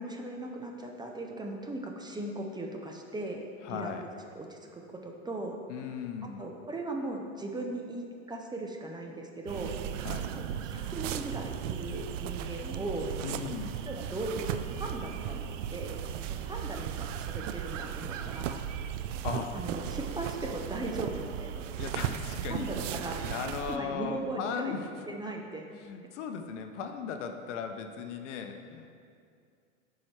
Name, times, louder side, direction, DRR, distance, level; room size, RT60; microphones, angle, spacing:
voice 1, 0.0-3.9 4.3-5.5 6.4-9.7 10.4-13.1 13.9-16.0 16.4-18.6 19.5-21.6 22.5-23.2 23.6-24.7 25.1-25.7, right 2 dB, 10° right, 1 dB, 0.7 m, -38 dB
voice 2, 3.6-4.1 5.7-6.4 10.0-10.3 13.2-13.8 19.2-19.6 21.8-24.8 25.8-28.9, left 6 dB, 65° left, 6 dB, 0.8 m, -37 dB
sound 1, 9.5-23.8, right 9 dB, 70° right, 0.5 m, -36 dB
12.0 x 4.8 x 3.2 m, 2.3 s
hypercardioid pair, 90°, 39 cm